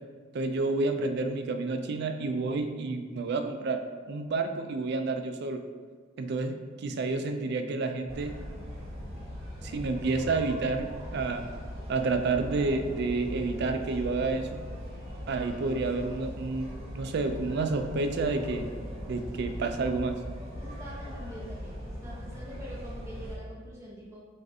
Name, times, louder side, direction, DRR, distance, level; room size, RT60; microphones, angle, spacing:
voice 1, 0.3-3.8 4.1-5.6 6.2-8.3 9.6-11.5 11.9-14.6 15.3-18.7 19.1-20.2, right 3 dB, 60° right, 7 dB, 0.4 m, -30 dB
sound 1, 8.1-23.4, equal, 30° right, 1.2 m, -40 dB
voice 2, 20.6-24.3, equal, 15° right, -6 dB, 0.9 m, -45 dB
6.4 x 2.5 x 2.7 m, 1.5 s
head